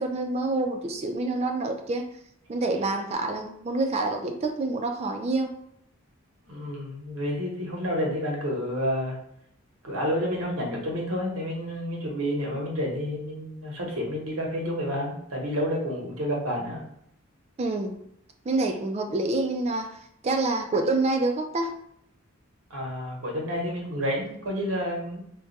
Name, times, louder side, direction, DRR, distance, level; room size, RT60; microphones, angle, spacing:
voice 1, 0.0-2.1 2.5-5.5 17.6-17.9 18.5-20.0 20.2-21.8, right 2 dB, 30° right, 5 dB, 0.3 m, -27 dB
voice 2, 6.5-9.2 9.8-16.8 22.7-25.2, equal, 85° right, -1 dB, 0.9 m, -29 dB
2.3 x 2.2 x 3.9 m, 0.72 s
head